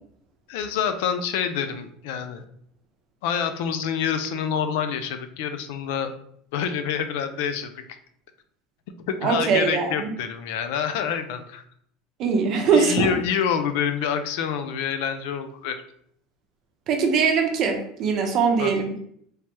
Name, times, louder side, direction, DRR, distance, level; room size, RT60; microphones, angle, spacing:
voice 1, 0.5-2.4 3.2-6.1 6.5-7.8 9.1-11.6 12.7-15.8 18.6-18.7, left 7 dB, 75° left, 9 dB, 0.3 m, -27 dB
voice 2, 9.2-10.1 12.2-13.1 16.9-19.0, right 5 dB, 45° right, 3 dB, 0.6 m, -21 dB
3.2 x 2.1 x 2.9 m, 0.66 s
supercardioid pair, 130°, 0 cm